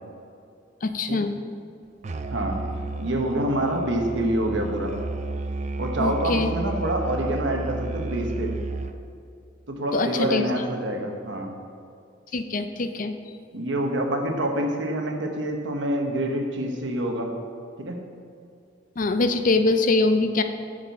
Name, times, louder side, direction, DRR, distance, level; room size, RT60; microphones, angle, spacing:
voice 1, 0.8-1.4 6.0-6.5 9.9-10.4 12.3-13.1 19.0-20.4, left 3 dB, 45° left, 8 dB, 0.5 m, -23 dB
Musical instrument, 2.0-9.1, right 2 dB, 40° right, 0.4 m, -32 dB
voice 2, 3.0-4.9 5.8-8.5 9.7-11.5 13.5-17.3 17.8-18.0, right 1 dB, 80° right, 3 dB, 1.1 m, -26 dB
10.0 x 6.6 x 4.1 m, 2.4 s
head